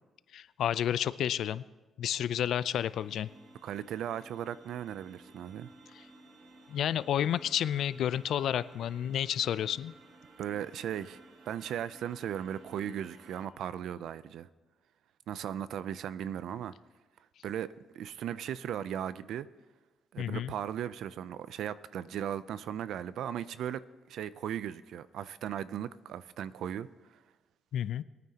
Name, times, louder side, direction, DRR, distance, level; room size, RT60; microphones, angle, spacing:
voice 1, 0.3-1.6 2.0-3.3 6.7-9.9 20.2-20.5 27.7-28.0, left 10 dB, 70° left, 16 dB, 0.4 m, -30 dB
sound 1, 2.5-13.5, right 3 dB, 50° right, 1.4 m, -56 dB
voice 2, 3.6-5.7 10.4-11.2 11.5-14.5 15.3-16.7 17.4-19.5 20.1-23.8 24.1-26.9, right 10 dB, 75° right, 16 dB, 0.4 m, -37 dB
22.5 x 9.2 x 2.9 m, 1.2 s
cardioid pair, 90°, 0 cm